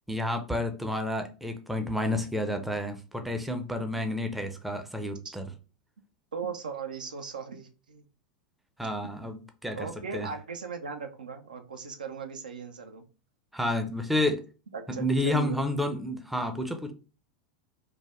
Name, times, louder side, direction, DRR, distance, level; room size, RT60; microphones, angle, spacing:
voice 1, 0.1-5.4 8.8-10.3 13.5-14.4 14.9-16.9, left 1 dB, 5° right, 0.4 m, -30 dB
voice 2, 6.3-8.1 9.8-13.0 14.7-15.6, right 5 dB, 80° right, 0.4 m, -38 dB
3.2 x 2.1 x 2.4 m
figure-of-eight pair, 90°, 4 cm